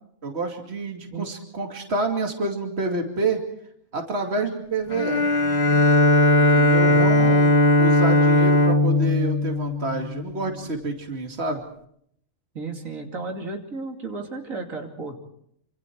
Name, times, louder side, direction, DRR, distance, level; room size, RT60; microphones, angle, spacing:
voice 1, 0.2-3.4 3.9-5.3 6.4-11.6, right 2 dB, 50° right, 3 dB, 2.7 m, -28 dB
Bowed string instrument, 4.9-10.4, left 1 dB, 25° left, 1.2 m, -18 dB
voice 2, 6.7-7.5 12.5-15.2, right 3 dB, 80° right, 2 dB, 3.1 m, -34 dB
27.0 x 26.5 x 4.6 m, 0.69 s
omnidirectional pair, 1.4 m